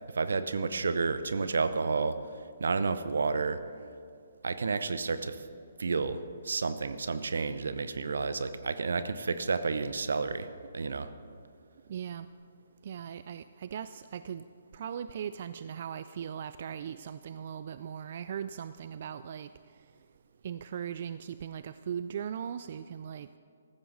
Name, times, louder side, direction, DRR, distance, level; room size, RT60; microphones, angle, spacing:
voice 1, 0.1-2.2 2.6-3.6 4.4-5.4 5.8-11.1, right 4 dB, 80° right, 12 dB, 0.8 m, -31 dB
voice 2, 11.9-12.3 12.8-19.5 20.4-23.4, right 8 dB, 55° right, 13 dB, 0.3 m, -39 dB
15.0 x 14.0 x 4.0 m, 2.3 s
hypercardioid pair, 145°, 0 cm